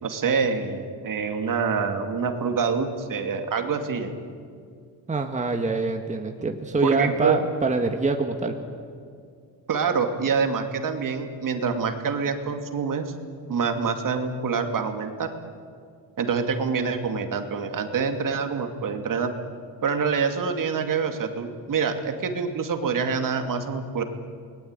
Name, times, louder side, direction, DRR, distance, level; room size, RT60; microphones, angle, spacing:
voice 1, 0.0-4.1 6.8-7.4 9.7-13.1 13.5-15.3 16.2-19.3 19.8-24.0, right 5 dB, 45° right, 6 dB, 2.6 m, -26 dB
voice 2, 5.1-8.6, right 3 dB, 15° right, 4 dB, 1.8 m, -25 dB
28.5 x 20.5 x 9.1 m, 2.2 s
cardioid pair, 110°, 44 cm